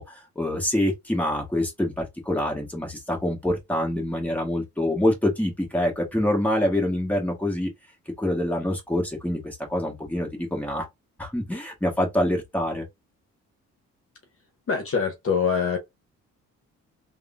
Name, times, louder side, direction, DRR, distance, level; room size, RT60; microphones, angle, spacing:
voice 1, 0.0-7.7 8.2-10.9 11.2-12.8, left 1 dB, 5° left, 1.4 m, -26 dB
voice 2, 14.7-15.8, left 6 dB, 50° left, 1.0 m, -24 dB
3.5 x 2.3 x 2.5 m
cardioid pair, 90°, 30 cm